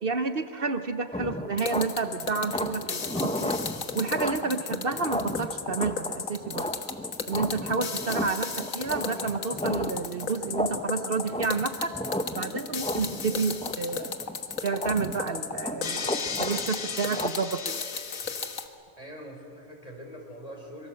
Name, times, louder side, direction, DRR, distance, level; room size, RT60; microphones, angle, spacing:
voice 1, 0.0-3.5 3.9-6.7 7.3-11.9 12.3-14.1 14.6-17.8, right 4 dB, 50° right, 9 dB, 1.1 m, -30 dB
sound 1, 1.1-17.3, left 1 dB, 5° left, 0.7 m, -34 dB
sound 2, 1.6-18.7, left 6 dB, 85° left, 1.9 m, -34 dB
voice 2, 18.2-18.5 19.0-20.9, equal, 30° left, 1 dB, 4.7 m, -44 dB
25.5 x 23.0 x 7.8 m, 2.5 s
omnidirectional pair, 1.3 m